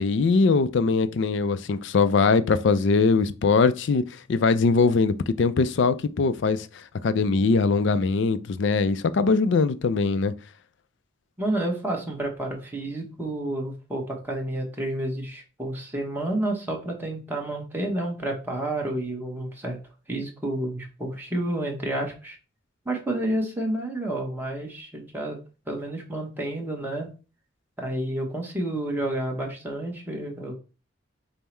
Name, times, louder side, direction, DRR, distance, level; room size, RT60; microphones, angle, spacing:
voice 1, 0.0-10.3, left 4 dB, 60° left, 0.4 m, -22 dB
voice 2, 11.4-19.8 20.1-22.4 22.8-25.4 25.7-27.1 27.8-30.5, right 1 dB, 10° right, 1.0 m, -30 dB
5.4 x 2.0 x 4.4 m
head